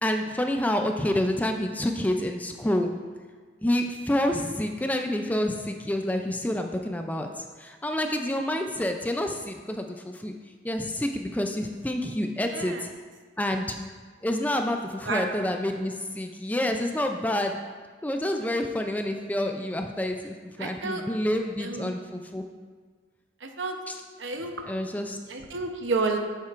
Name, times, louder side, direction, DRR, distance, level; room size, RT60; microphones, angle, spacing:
voice 1, 0.0-2.9 3.6-7.3 7.6-10.3 10.6-12.9 13.4-13.8 14.2-17.6 18.0-22.4 23.9-24.0 24.7-25.2, left 1 dB, 10° left, 4 dB, 0.4 m, -28 dB
voice 2, 20.6-21.0 21.6-21.9 23.4-23.7 24.2-24.5 25.3-26.2, right 3 dB, 80° right, 4 dB, 0.8 m, -30 dB
9.9 x 7.4 x 2.5 m, 1.5 s
head